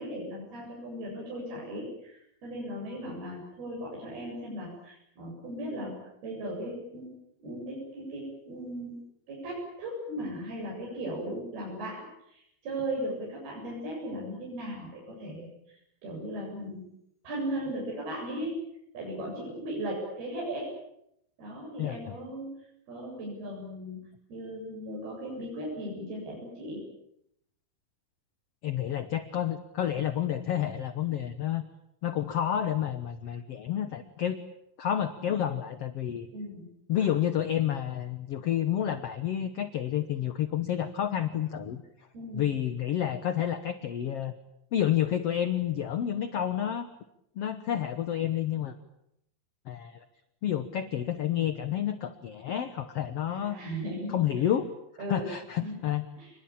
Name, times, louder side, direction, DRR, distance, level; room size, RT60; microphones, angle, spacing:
voice 1, 0.0-5.9 6.2-7.1 7.4-9.0 9.3-15.5 16.0-16.8 17.2-18.6 18.9-20.7 21.4-22.5 22.9-24.0 24.3-26.8 36.3-36.6 42.1-42.5 53.3-54.4 55.0-55.3 55.6-55.7 56.2-56.3, right 1 dB, 75° right, -3 dB, 10.0 m, -37 dB
voice 2, 21.8-22.1 28.6-31.6 32.0-34.4 34.8-36.3 36.9-41.8 42.3-44.3 44.7-46.9 47.3-48.7 49.6-50.0 50.4-53.6 54.1-54.7 55.1-56.0, left 10 dB, 65° left, 10 dB, 1.5 m, -30 dB
29.0 x 21.0 x 8.8 m, 0.78 s
omnidirectional pair, 4.4 m